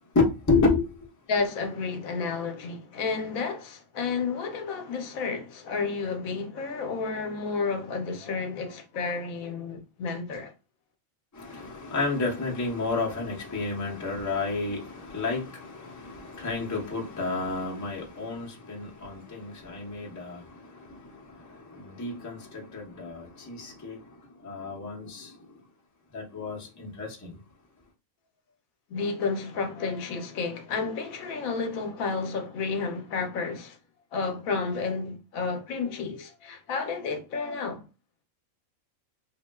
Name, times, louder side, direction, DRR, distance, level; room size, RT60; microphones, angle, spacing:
voice 1, 0.1-1.1 11.3-25.6 26.1-27.4, left 3 dB, 15° left, 0.6 m, -31 dB
voice 2, 1.3-10.5 28.9-33.8 34.1-37.8, left 4 dB, 80° left, 1.1 m, -31 dB
3.4 x 2.4 x 2.2 m
omnidirectional pair, 1.4 m